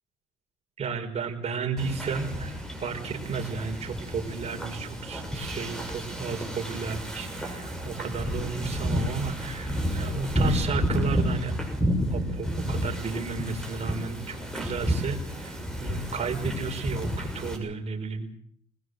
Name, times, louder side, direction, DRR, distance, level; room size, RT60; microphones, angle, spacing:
voice 1, 0.8-11.7 12.1-18.3, right 5 dB, 40° right, 3 dB, 5.0 m, -33 dB
Wind / Ocean, 1.8-17.6, equal, 5° left, 6.5 m, -31 dB
21.0 x 20.5 x 8.0 m, 0.64 s
cardioid pair, 110°, 17 cm